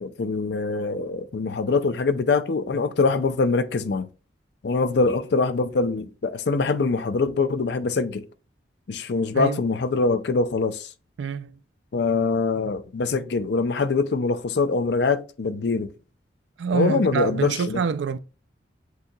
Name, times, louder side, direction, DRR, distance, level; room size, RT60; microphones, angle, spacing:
voice 1, 0.0-4.1 4.6-8.3 8.9-10.9 11.9-15.9 16.7-17.8, left 4 dB, 65° left, 0.4 m, -23 dB
voice 2, 11.2-11.6 16.6-18.2, right 6 dB, 75° right, 0.4 m, -26 dB
8.0 x 2.8 x 2.2 m
head